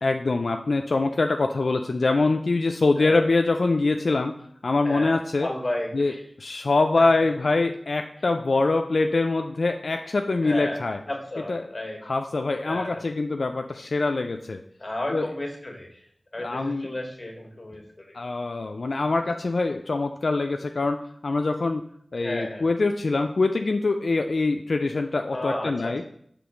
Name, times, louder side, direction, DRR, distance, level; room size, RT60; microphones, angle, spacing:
voice 1, 0.0-4.3 4.6-5.5 5.9-11.0 11.5-11.7 12.0-14.6 15.1-15.3 16.4-16.9 18.1-21.8 22.1-26.0, left 3 dB, 80° left, 5 dB, 0.3 m, -24 dB
voice 2, 4.8-6.2 10.4-10.8 11.1-12.0 12.6-13.0 14.8-15.9 16.3-18.1 22.2-22.6 25.3-25.9, left 1 dB, 40° left, 1 dB, 1.4 m, -33 dB
6.1 x 3.1 x 4.9 m, 0.65 s
wide cardioid pair, 60°, 0 cm